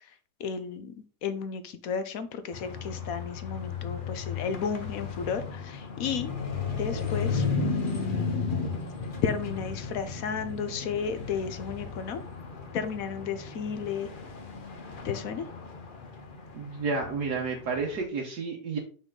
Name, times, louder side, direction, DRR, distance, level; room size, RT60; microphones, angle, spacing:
voice 1, 0.4-0.9 1.2-6.3 6.7-8.5 9.2-12.2 12.7-14.1 15.0-15.4, left 6 dB, 60° left, 10 dB, 1.0 m, -33 dB
sound 1, 2.5-18.0, left 4 dB, 40° left, 0.8 m, -35 dB
voice 2, 16.5-18.8, right 4 dB, 70° right, 0 dB, 1.5 m, -31 dB
5.7 x 5.7 x 3.7 m, 0.39 s
omnidirectional pair, 1.9 m